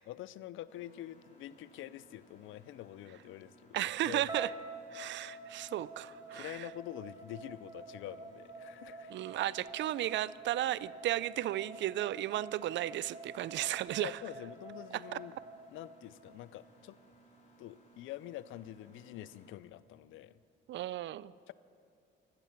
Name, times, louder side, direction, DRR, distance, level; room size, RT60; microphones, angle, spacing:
voice 1, 0.1-4.4 6.3-9.4 14.0-15.4 15.7-17.0 17.6-20.4 21.5-21.6, left 13 dB, 85° left, 18 dB, 0.5 m, -46 dB
Mechanisms, 0.7-19.5, right 2 dB, 35° left, 3.3 m, -63 dB
voice 2, 3.7-4.5 4.9-6.7 9.1-14.2 14.9-15.2 20.7-21.3, right 13 dB, 65° right, 19 dB, 0.4 m, -34 dB
sound 1, 4.3-16.4, right 3 dB, 20° right, 1.6 m, -48 dB
15.5 x 12.0 x 5.9 m, 2.4 s
cardioid pair, 90°, 20 cm